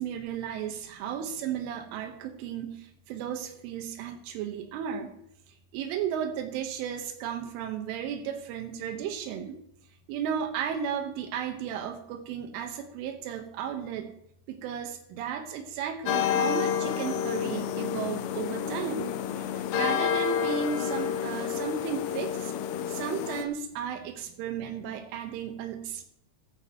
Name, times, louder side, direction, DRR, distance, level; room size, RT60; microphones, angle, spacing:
voice 1, 0.0-5.2 5.7-9.6 10.1-14.1 14.5-22.5 22.9-26.0, right 8 dB, 90° right, 5 dB, 3.9 m, -34 dB
sound 1, 16.1-23.4, left 9 dB, 85° left, 3.4 m, -29 dB
15.0 x 13.5 x 3.1 m, 0.72 s
omnidirectional pair, 5.5 m